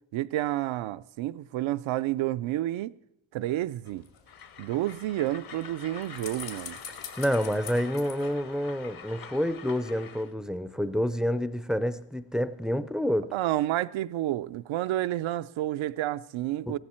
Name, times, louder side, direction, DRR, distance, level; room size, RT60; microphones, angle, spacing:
voice 1, 0.1-2.9 3.3-4.0 4.6-6.8 13.3-16.8, right 14 dB, 75° right, 0.5 m, -30 dB
sound 1, 3.8-9.2 9.5-9.6, left 6 dB, 75° left, 2.6 m, -46 dB
Train, 4.3-10.3, left 7 dB, 45° left, 0.9 m, -46 dB
voice 2, 7.2-13.3 16.7-16.8, equal, ahead, 0.4 m, -28 dB
15.0 x 13.0 x 4.4 m
cardioid pair, 85°, 49 cm